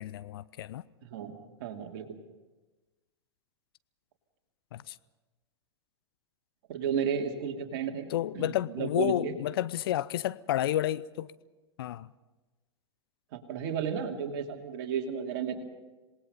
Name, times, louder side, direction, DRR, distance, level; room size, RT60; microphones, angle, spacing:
voice 1, 0.0-0.8 4.7-5.0 8.1-11.3 11.8-12.1, left 13 dB, 55° left, 0.6 m, -31 dB
voice 2, 1.0-1.3 1.6-2.2 6.7-8.1 8.3-9.3 13.3-15.6, right 7 dB, 50° right, 2.8 m, -33 dB
27.0 x 19.5 x 5.6 m
figure-of-eight pair, 100°, 15 cm